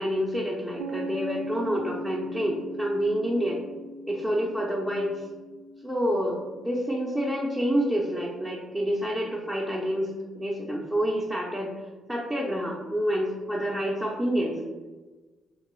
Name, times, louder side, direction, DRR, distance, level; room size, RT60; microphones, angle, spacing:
voice 1, 0.0-3.6 4.1-5.3 5.8-11.7 12.1-14.6, equal, ahead, -3 dB, 0.5 m, -28 dB
Piano, 0.8-8.0, equal, 80° right, 0.3 m, -40 dB
2.9 x 2.9 x 3.0 m, 1.3 s
cardioid pair, 90°, 0 cm